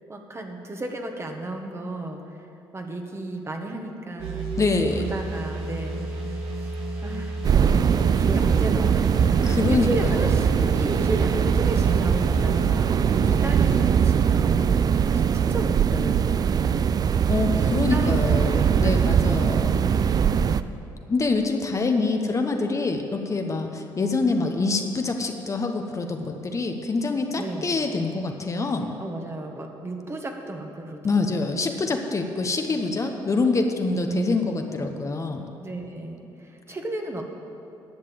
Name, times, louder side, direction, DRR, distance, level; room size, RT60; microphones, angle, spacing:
voice 1, 0.1-2.5 2.7-4.5 5.1-6.1 6.6-6.7 7.0-7.4 8.1-12.9 13.2-14.7 15.1-16.9 17.6-20.6 27.4-27.8 29.0-31.5 33.9-34.5 35.6-37.2, right 1 dB, 30° right, 3 dB, 1.5 m, -34 dB
sound 1, 4.2-13.9, right 2 dB, 80° right, 1.7 m, -32 dB
voice 2, 4.6-5.0 9.4-10.2 17.3-20.1 21.1-29.0 31.0-35.5, left 3 dB, 35° left, 4 dB, 1.0 m, -25 dB
sound 2, 7.4-20.6, right 7 dB, 45° right, 0.4 m, -21 dB
11.0 x 6.7 x 8.5 m, 2.8 s
supercardioid pair, 65°, 9 cm